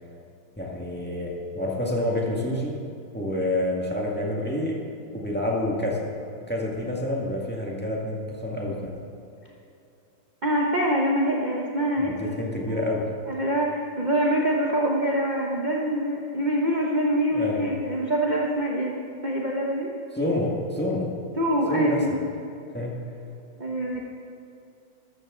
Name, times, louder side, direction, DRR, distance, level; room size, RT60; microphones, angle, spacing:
voice 1, 0.6-2.8 3.1-4.8 5.1-6.1 6.5-9.0 12.0-13.1 17.3-17.7 20.1-21.2 21.7-22.2 22.7-23.0, left 1 dB, 5° left, -3 dB, 1.5 m, -28 dB
voice 2, 10.4-12.9 13.3-19.0 19.2-19.9 21.4-22.2 23.6-24.0, equal, 40° right, -2 dB, 0.6 m, -25 dB
13.5 x 13.5 x 3.8 m, 2.6 s
omnidirectional pair, 2.3 m